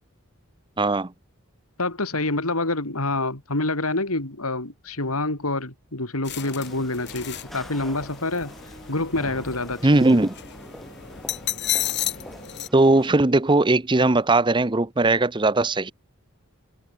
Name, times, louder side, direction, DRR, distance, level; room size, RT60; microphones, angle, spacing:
voice 1, 0.8-1.1 9.8-10.3 12.7-15.9, right 2 dB, 20° right, 0.7 m, -19 dB
voice 2, 1.8-8.6 8.9-10.2, left 2 dB, 80° left, 3.9 m, -27 dB
sound 1, 6.2-12.7, left 12 dB, 50° left, 3.6 m, -33 dB
sound 2, 6.4-13.2, equal, ahead, 3.3 m, -44 dB
head